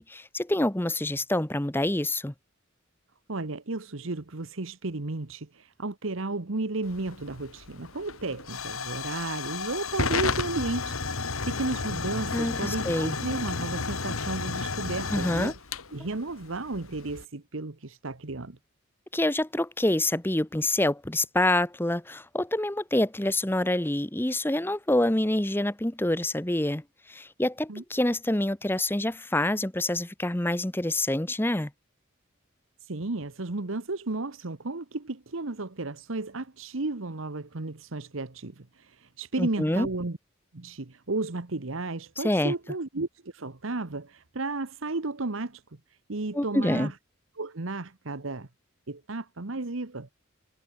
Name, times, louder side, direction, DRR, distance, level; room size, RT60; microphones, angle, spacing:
voice 1, 0.0-2.3 12.3-13.2 15.1-15.5 19.1-31.7 39.4-39.9 42.2-42.5 46.3-46.9, left 1 dB, 10° left, 0.9 m, -27 dB
voice 2, 3.3-15.5 15.9-18.6 27.7-27.8 32.8-40.2 40.5-45.6 46.1-46.9 47.4-48.5 48.9-50.1, right 2 dB, 70° right, 1.2 m, -33 dB
Hiss / Fire / Tick, 6.8-17.2, left 4 dB, 85° left, 2.1 m, -32 dB
head